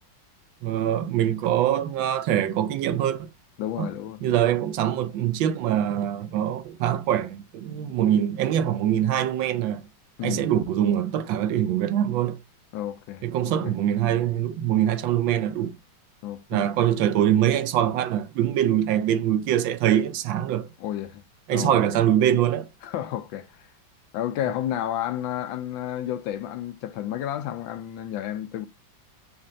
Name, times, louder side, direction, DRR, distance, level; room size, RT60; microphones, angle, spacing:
voice 1, 0.6-3.3 3.8-3.9 4.2-9.8 10.2-12.4 13.2-15.8 16.5-20.7 21.5-22.7, right 11 dB, 80° right, 1.3 m, -23 dB
voice 2, 3.6-4.6 10.2-10.5 12.7-13.8 16.2-16.6 20.8-21.2 21.5-21.8 22.8-23.7 24.1-28.7, left 11 dB, 80° left, 1.3 m, -31 dB
4.4 x 2.4 x 4.1 m
omnidirectional pair, 2.1 m